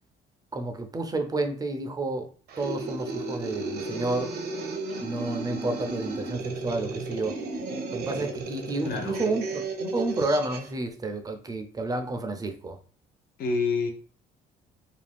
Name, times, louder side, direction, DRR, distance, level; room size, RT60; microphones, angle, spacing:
voice 1, 0.5-2.3 2.6-4.4 5.0-7.4 7.9-12.8, right 2 dB, 20° right, 0.5 m, -30 dB
sound 1, 2.5-10.7, right 2 dB, 70° right, 0.8 m, -34 dB
voice 2, 8.8-9.2 13.4-13.9, left 4 dB, 65° left, 0.7 m, -27 dB
2.5 x 2.2 x 3.3 m
cardioid pair, 110°, 17 cm